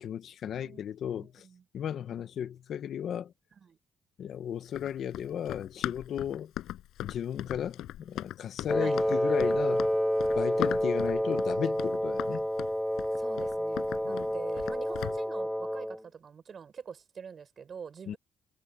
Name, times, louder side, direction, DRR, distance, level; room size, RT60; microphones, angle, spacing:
voice 1, 0.0-1.5 1.7-3.3 4.2-6.5 7.0-9.9 10.3-12.5 14.0-14.3 18.1-18.2, left 9 dB, 65° left, 1.2 m, -35 dB
voice 2, 0.6-1.6 3.6-3.8 8.8-8.9 13.2-18.2, right 6 dB, 50° right, 4.7 m, -45 dB
Run, 4.7-15.2, left 13 dB, 85° left, 6.8 m, -39 dB
Wind instrument woodwind instrument, 8.7-16.0, equal, 5° left, 1.9 m, -29 dB
cardioid pair, 90°, 0 cm